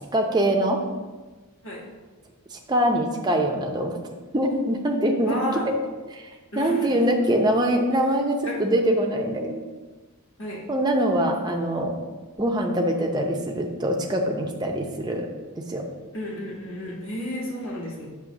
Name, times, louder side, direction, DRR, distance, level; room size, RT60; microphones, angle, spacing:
voice 1, 0.1-0.8 2.5-4.0 4.3-5.8 6.1-6.3 6.5-9.6 10.7-11.9 12.4-15.3 15.6-15.8, right 1 dB, 20° right, 1 dB, 0.6 m, -23 dB
voice 2, 5.3-5.7 6.5-6.9 8.4-8.5 10.4-10.6 16.1-18.1, equal, 60° left, -4 dB, 1.8 m, -31 dB
7.7 x 3.0 x 6.0 m, 1.3 s
head